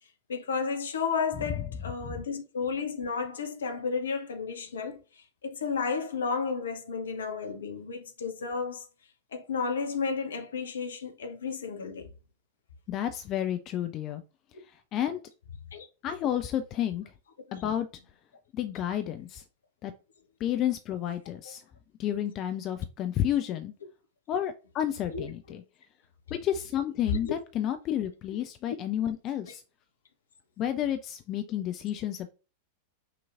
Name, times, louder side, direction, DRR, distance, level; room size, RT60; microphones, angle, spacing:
voice 1, 0.3-5.0 5.4-8.8 9.3-12.1 15.7-15.9 17.5-17.6 21.4-21.5 25.1-25.3, left 5 dB, 65° left, 0.8 m, -32 dB
voice 2, 12.9-14.2 14.7-15.2 16.0-17.0 17.5-17.9 18.5-19.4 19.8-19.9 20.4-21.6 22.0-23.7 24.3-25.6 26.3-29.6 30.6-32.3, left 10 dB, 35° left, 0.4 m, -31 dB
5.9 x 2.9 x 2.5 m
figure-of-eight pair, 90°, 0 cm